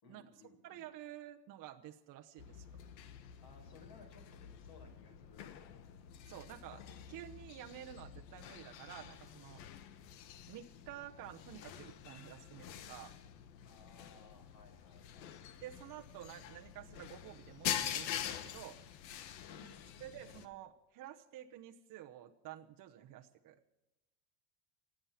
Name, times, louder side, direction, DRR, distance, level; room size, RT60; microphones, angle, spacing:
voice 1, 0.0-0.9 3.2-5.8 13.6-15.3 19.5-20.1, left 3 dB, 45° left, 4 dB, 5.3 m, -61 dB
voice 2, 0.6-2.7 6.3-9.6 10.5-13.1 15.6-18.8 20.0-23.6, right 12 dB, 40° right, 4 dB, 1.0 m, -51 dB
sound 1, 2.4-20.5, left 10 dB, 85° left, 1.5 m, -46 dB
25.5 x 8.9 x 5.8 m, 0.99 s
supercardioid pair, 125°, 50 cm